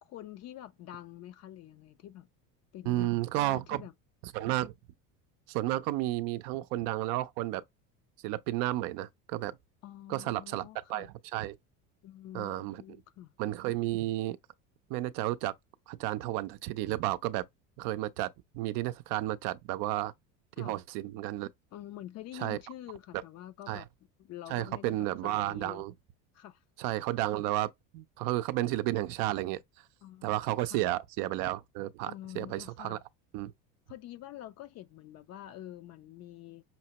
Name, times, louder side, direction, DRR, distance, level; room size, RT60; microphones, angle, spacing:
voice 1, 0.0-2.3 2.7-3.1 3.4-3.9 9.8-11.1 12.0-13.3 20.6-20.8 21.7-23.9 24.2-25.8 26.3-26.6 30.0-30.3 30.6-30.9 32.0-33.0 33.9-36.6, left 13 dB, 45° left, 0.5 m, -46 dB
voice 2, 2.9-3.8 4.3-4.7 5.5-7.6 8.2-9.5 10.1-11.6 12.3-12.8 13.4-14.4 14.9-15.5 15.9-17.4 17.8-18.3 18.5-20.1 20.6-21.5 22.3-22.6 23.7-23.8 24.5-25.9 26.8-29.6 30.2-33.0 33.3-33.5, right 16 dB, 65° right, 0.5 m, -32 dB
5.8 x 2.1 x 2.8 m
supercardioid pair, 105°, 38 cm